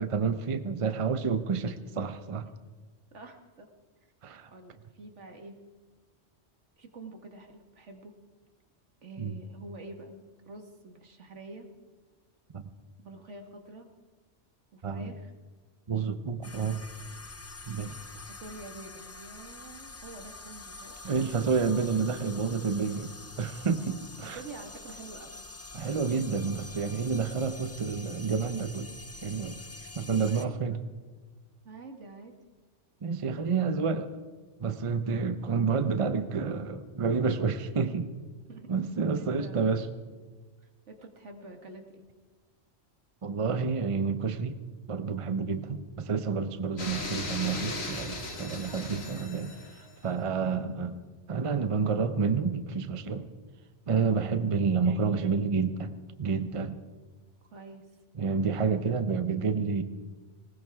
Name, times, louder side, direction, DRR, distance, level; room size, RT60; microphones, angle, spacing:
voice 1, 0.0-2.5 4.2-4.5 9.2-9.4 12.5-12.6 14.8-15.2 15.9-16.8 17.7-18.0 21.0-23.1 23.4-24.4 25.7-28.9 29.2-29.6 29.9-30.8 33.0-34.1 34.6-38.1 38.7-39.9 43.2-44.6 44.9-49.5 50.0-51.0 51.3-53.3 53.9-56.8 58.2-59.8, right 5 dB, 35° right, 10 dB, 0.7 m, -29 dB
voice 2, 3.1-3.7 4.5-5.6 6.8-8.1 9.0-11.7 13.0-13.9 14.7-15.3 18.3-21.2 24.2-25.4 30.3-30.7 31.6-32.3 38.5-38.7 39.2-39.8 40.9-42.0 50.4-50.7 57.5-57.9, right 2 dB, 85° right, 4 dB, 2.0 m, -47 dB
sound 1, 16.4-30.5, left 2 dB, 20° left, 0.5 m, -46 dB
sound 2, 46.8-49.9, left 2 dB, 65° left, 2.2 m, -37 dB
19.5 x 19.5 x 3.6 m, 1.4 s
omnidirectional pair, 1.2 m